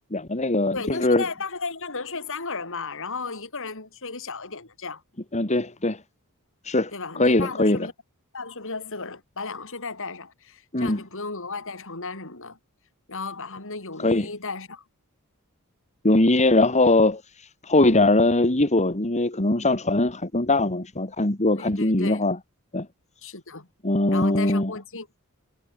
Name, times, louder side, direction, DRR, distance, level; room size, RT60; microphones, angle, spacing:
voice 1, 0.1-1.3 5.3-6.0 6.6-7.9 10.7-11.0 14.0-14.3 16.0-17.2 17.6-22.4 22.7-22.9 23.8-24.7, left 2 dB, 30° left, 2.5 m, -21 dB
voice 2, 0.7-5.0 6.9-7.9 8.3-12.6 13.1-14.8 21.5-22.2 23.2-23.7 24.1-25.1, left 4 dB, 65° left, 5.9 m, -34 dB
head